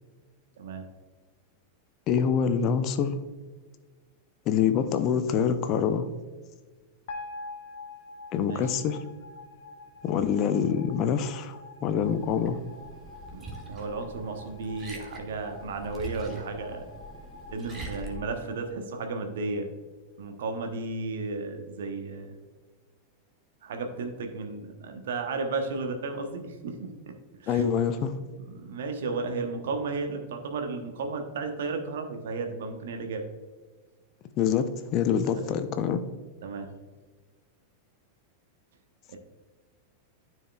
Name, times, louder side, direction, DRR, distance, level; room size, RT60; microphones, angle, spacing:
voice 1, 2.1-3.1 4.5-6.1 8.3-9.0 10.0-12.6 27.5-28.2 34.4-36.0, left 7 dB, 35° left, 10 dB, 0.5 m, -25 dB
sound 1, 7.1-19.4, left 3 dB, 55° left, 1.1 m, -46 dB
Liquid, 12.0-18.2, right 2 dB, 20° right, 1.5 m, -44 dB
voice 2, 13.3-16.8 17.5-19.7 20.2-22.3 23.6-27.6 28.4-33.2 35.3-35.5 36.4-36.7 39.1-39.2, right 3 dB, 60° right, 5 dB, 1.0 m, -34 dB
13.0 x 4.6 x 2.3 m, 1.4 s
figure-of-eight pair, 90°, 0 cm